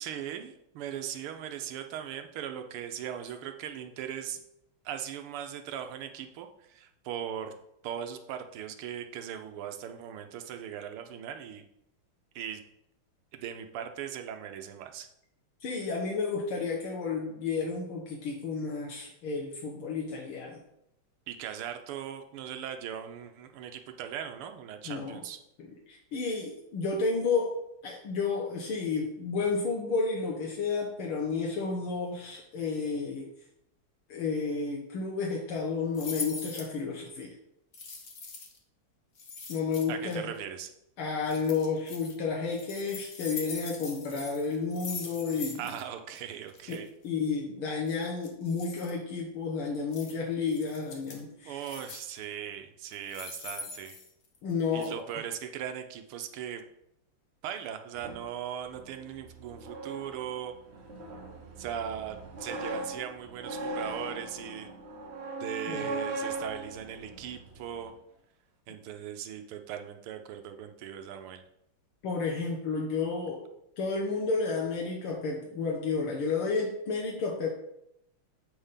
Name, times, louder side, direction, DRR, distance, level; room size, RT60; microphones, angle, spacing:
voice 1, 0.0-4.4 4.8-7.5 7.8-11.7 12.3-12.6 13.3-15.1 21.3-25.4 39.9-40.7 45.6-46.9 51.4-54.0 54.7-56.6 57.4-60.5 61.6-64.7 65.4-67.9 68.7-71.4, right 9 dB, 85° right, 7 dB, 1.7 m, -39 dB
voice 2, 15.6-20.6 24.9-25.2 25.6-33.3 34.1-37.4 39.5-40.2 41.0-45.6 46.7-46.8 47.0-51.7 54.4-55.0 65.7-65.9 72.0-73.5 73.8-77.5, left 4 dB, 80° left, -1 dB, 1.9 m, -31 dB
sound 1, 35.9-36.7 37.7-38.6 39.2-40.1 41.3-42.1 42.5-45.8 46.1-46.2 46.5-46.8 47.9-48.9 49.9-50.1 50.5-51.2 51.6-52.2 52.9-54.5 54.8-54.9, left 4 dB, 45° left, 0.9 m, -42 dB
sound 2, 57.9-67.9, right 2 dB, 60° right, 0.7 m, -39 dB
8.0 x 3.5 x 5.6 m, 0.78 s
omnidirectional pair, 2.4 m